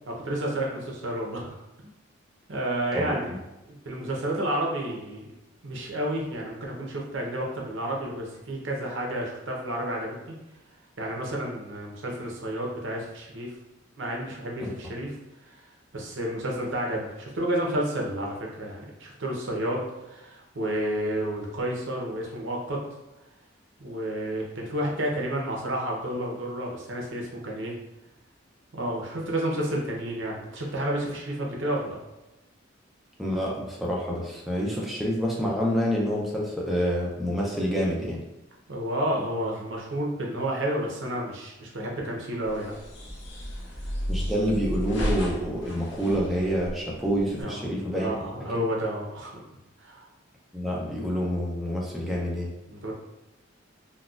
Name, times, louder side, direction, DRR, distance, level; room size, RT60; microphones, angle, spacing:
voice 1, 0.2-1.6 2.5-3.3 3.7-5.3 5.6-10.3 11.0-13.5 14.0-15.1 15.5-15.6 15.9-22.8 23.8-27.8 28.7-32.0 38.7-42.7 43.8-43.9 47.4-49.3 49.8-50.1 52.7-52.9, right 1 dB, 70° right, -1 dB, 0.7 m, -31 dB
voice 2, 33.2-38.2 44.1-48.1 50.5-52.5, equal, ahead, -4 dB, 0.4 m, -27 dB
sound 1, 42.4-47.4, equal, 60° left, 0.7 m, -33 dB
3.9 x 2.3 x 2.4 m, 0.97 s
head